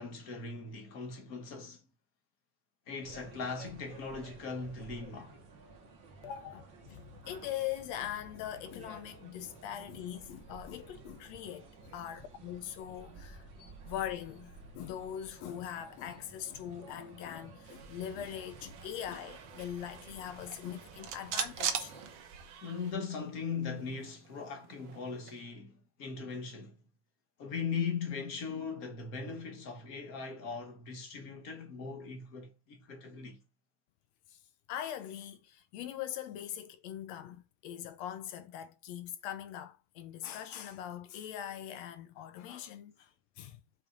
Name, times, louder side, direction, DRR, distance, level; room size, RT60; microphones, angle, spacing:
voice 1, 0.0-1.8 2.9-5.3 22.6-26.7 27.4-33.4, left 5 dB, 50° left, 1.1 m, -39 dB
sound 1, 3.0-22.2, right 3 dB, 50° right, 1.8 m, -53 dB
voice 2, 6.2-22.0 34.3-34.4 34.7-43.1 43.4-43.6, left 10 dB, 75° left, 1.7 m, -42 dB
sound 2, 17.6-22.9, right 6 dB, 85° right, 2.9 m, -55 dB
sound 3, 20.3-22.8 23.1-23.2 23.5-25.4, right 7 dB, 65° right, 1.2 m, -39 dB
7.0 x 4.3 x 5.2 m
omnidirectional pair, 3.5 m